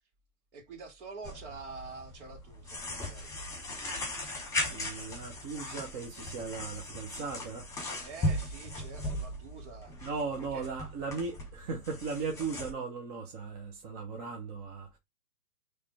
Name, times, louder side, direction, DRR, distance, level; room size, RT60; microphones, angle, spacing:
voice 1, 0.5-3.3 8.0-10.0 10.5-10.7, right 4 dB, 45° right, 2.6 m, -46 dB
sound 1, 1.2-12.7, left 1 dB, 5° left, 2.4 m, -38 dB
voice 2, 4.7-7.7 10.0-15.0, right 4 dB, 25° right, 1.0 m, -37 dB
8.4 x 3.4 x 3.4 m
figure-of-eight pair, 125°, 46 cm